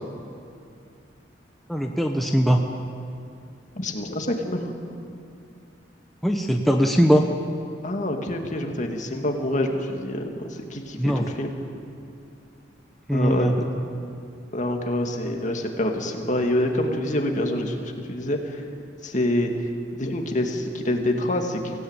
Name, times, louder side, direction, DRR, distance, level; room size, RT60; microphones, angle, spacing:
voice 1, 1.7-2.6 6.2-7.2 11.0-11.2 13.1-13.5, equal, ahead, 2 dB, 1.0 m, -20 dB
voice 2, 3.8-4.7 7.8-11.6 13.1-13.6 14.5-18.6 19.0-19.5 20.0-21.8, left 1 dB, 40° left, 3 dB, 2.3 m, -26 dB
24.0 x 17.0 x 9.1 m, 2.5 s
head